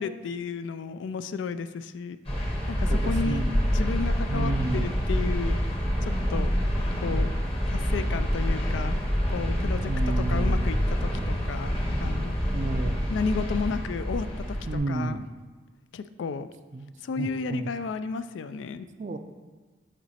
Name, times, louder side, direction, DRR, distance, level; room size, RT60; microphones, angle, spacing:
voice 1, 0.0-2.2 2.7-5.6 6.0-6.5 7.0-7.3 7.7-9.0 9.3-9.9 10.2-11.7 12.0-12.4 13.1-14.6 14.9-15.2 15.9-16.5 17.0-18.9, left 5 dB, 85° left, 12 dB, 0.3 m, -33 dB
sound 1, 2.2-14.8, equal, 35° left, 1.1 m, -27 dB
voice 2, 2.8-3.5 4.3-4.9 9.9-10.7 12.5-13.1 14.7-15.2 16.7-17.7 19.0-19.2, right 3 dB, 40° right, 9 dB, 0.4 m, -32 dB
7.5 x 4.0 x 4.2 m, 1.3 s
head